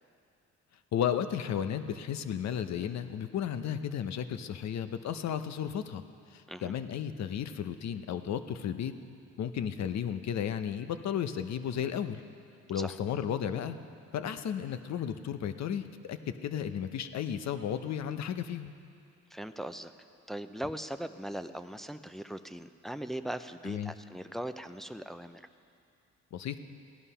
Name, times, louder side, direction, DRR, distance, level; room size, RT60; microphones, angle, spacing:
voice 1, 0.9-6.0 6.3-8.9 9.4-12.2 12.7-13.8 14.1-18.7 23.6-23.9 26.3-26.6, left 9 dB, 65° left, 10 dB, 0.8 m, -34 dB
voice 2, 19.3-19.9 20.3-25.4, right 1 dB, ahead, 9 dB, 0.4 m, -39 dB
16.0 x 11.0 x 5.6 m, 2.5 s
cardioid pair, 90°, 30 cm